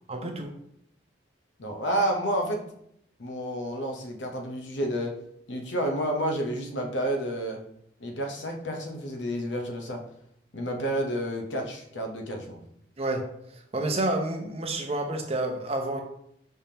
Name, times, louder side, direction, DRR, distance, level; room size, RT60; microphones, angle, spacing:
voice 1, 0.1-0.5 13.0-13.2 13.7-16.0, right 2 dB, 35° right, 3 dB, 0.6 m, -29 dB
voice 2, 1.6-2.6 3.2-5.1 5.5-7.6 8.0-10.0 10.5-12.6, right 1 dB, 75° left, 2 dB, 0.8 m, -30 dB
5.5 x 3.4 x 2.8 m, 0.72 s
head